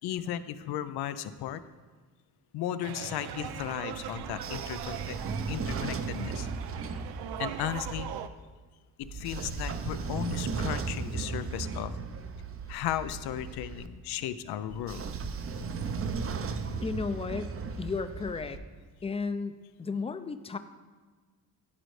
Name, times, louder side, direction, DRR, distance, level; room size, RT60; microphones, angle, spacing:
voice 1, 0.0-1.6 2.5-5.2 5.5-6.5 7.4-8.1 9.0-12.0 12.7-15.0, left 11 dB, 80° left, 13 dB, 0.6 m, -35 dB
sound 1, 2.8-8.3, right 9 dB, 85° right, 0.6 m, -40 dB
Train / Sliding door, 4.1-8.2 9.0-13.9 14.7-18.6, right 5 dB, 35° right, 0.6 m, -36 dB
voice 2, 16.8-18.6 19.0-20.6, left 4 dB, 15° left, 11 dB, 0.5 m, -34 dB
13.5 x 5.1 x 3.2 m, 1.4 s
cardioid pair, 75°, 38 cm